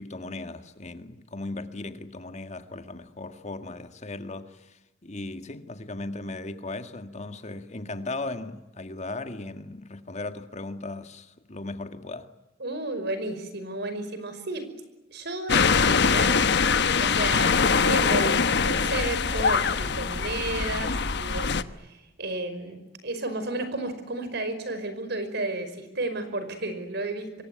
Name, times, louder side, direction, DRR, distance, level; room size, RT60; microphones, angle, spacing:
voice 1, 0.0-12.3, left 2 dB, 35° left, 1.9 m, -37 dB
voice 2, 12.6-14.7 15.1-16.4 17.0-27.4, right 2 dB, 60° right, 5.3 m, -32 dB
sound 1, 15.5-21.6, left 5 dB, 60° left, 1.1 m, -23 dB
26.0 x 23.0 x 9.6 m
head